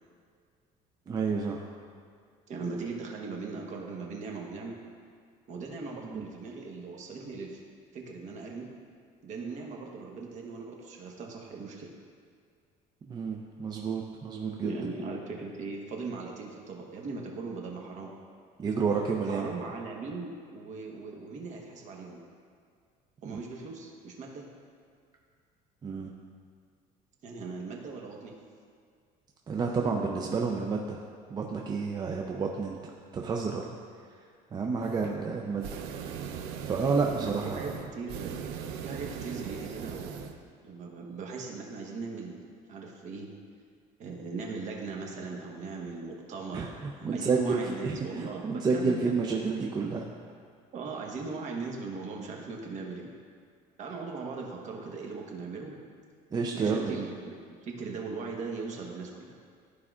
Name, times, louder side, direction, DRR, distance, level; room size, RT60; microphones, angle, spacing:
voice 1, 1.1-1.6 6.0-6.2 13.1-14.7 18.6-19.5 25.8-26.1 29.5-31.0 31.3-32.8 33.1-33.8 34.5-35.7 36.7-37.7 46.5-50.1 56.3-57.0, right 4 dB, 25° right, 0 dB, 0.5 m, -30 dB
voice 2, 2.5-4.8 5.5-7.6 7.9-8.7 9.2-11.9 14.6-18.1 19.3-22.2 23.2-24.4 27.2-28.4 37.2-38.4 38.8-40.4 40.6-42.4 42.7-43.3 44.0-49.1 50.7-53.1 53.8-55.7 56.5-57.3 57.6-59.4, right 4 dB, 45° right, 0 dB, 1.2 m, -39 dB
sound 1, 34.8-35.2 35.5-40.4, right 7 dB, 90° right, 0.6 m, -39 dB
13.5 x 4.7 x 2.4 m, 2.1 s
cardioid pair, 140°, 17 cm